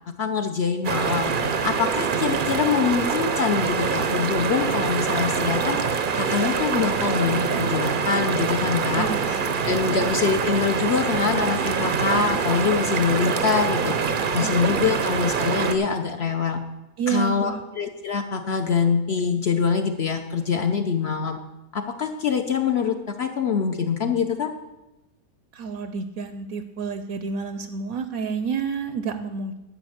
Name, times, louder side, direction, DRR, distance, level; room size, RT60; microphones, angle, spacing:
voice 1, 0.2-1.3 1.6-5.8 6.1-9.1 9.6-13.9 14.3-16.6 17.1-21.4 21.7-24.5, left 6 dB, 55° left, 6 dB, 0.8 m, -24 dB
sound 1, 0.8-15.8, right 5 dB, 50° right, 0.6 m, -25 dB
voice 2, 9.0-9.4 14.4-14.5 14.8-15.0 17.0-17.6 25.5-29.6, right 6 dB, 70° right, 9 dB, 1.0 m, -29 dB
11.5 x 5.2 x 7.8 m, 1.0 s
omnidirectional pair, 1.7 m